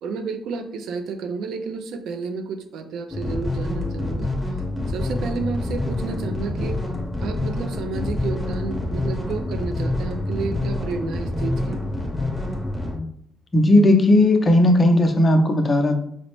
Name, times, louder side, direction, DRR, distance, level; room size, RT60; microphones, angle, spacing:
voice 1, 0.0-4.3 4.9-6.8 7.2-11.8, right 4 dB, 80° right, 7 dB, 0.4 m, -31 dB
sound 1, 3.1-13.0, left 2 dB, 5° left, 0.9 m, -27 dB
voice 2, 13.5-16.0, left 1 dB, 30° left, 4 dB, 0.5 m, -16 dB
4.0 x 2.0 x 3.0 m, 0.69 s
cardioid pair, 90°, 0 cm